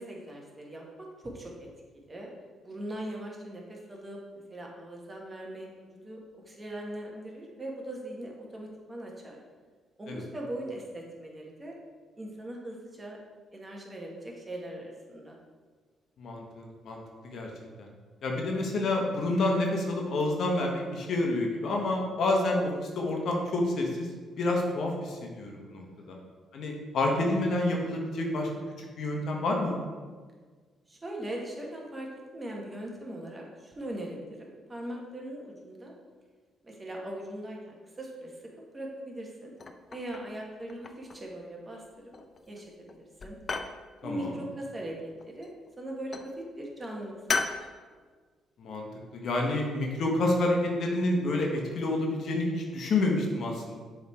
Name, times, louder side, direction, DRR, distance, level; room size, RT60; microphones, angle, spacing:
voice 1, 0.0-1.7 2.1-2.3 2.6-4.2 4.5-6.2 6.4-9.4 10.0-11.7 12.2-13.2 13.5-15.4 25.8-26.2 30.9-35.9 36.6-38.3 38.7-39.5 39.9-42.1 42.5-43.4 44.0-45.5 45.8-47.5, right 1 dB, 25° right, -1 dB, 1.4 m, -40 dB
voice 2, 16.2-17.5 17.8-17.9 18.2-26.1 26.5-28.5 28.8-29.8 44.0-44.3 48.6-48.9 49.1-53.8, left 2 dB, 65° left, 0 dB, 1.2 m, -29 dB
sound 1, 39.6-40.3 40.7-41.3 42.1-42.6 42.9-43.8 45.2-45.7 46.1-46.3 47.3-47.6, left 4 dB, 40° left, 0.5 m, -34 dB
7.1 x 3.6 x 4.5 m, 1.5 s
cardioid pair, 90°, 0 cm